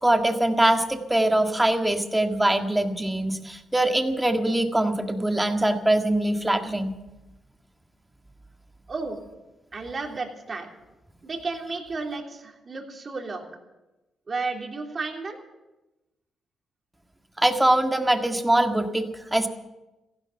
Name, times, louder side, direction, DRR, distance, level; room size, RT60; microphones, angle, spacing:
voice 1, 0.0-7.0 17.4-19.5, right 1 dB, 10° right, 5 dB, 1.7 m, -23 dB
voice 2, 8.9-9.2 9.7-10.7 11.2-13.5 14.3-15.4, right 3 dB, 40° right, 1 dB, 3.3 m, -32 dB
15.5 x 12.0 x 7.9 m, 1.0 s
cardioid pair, 75°, 0 cm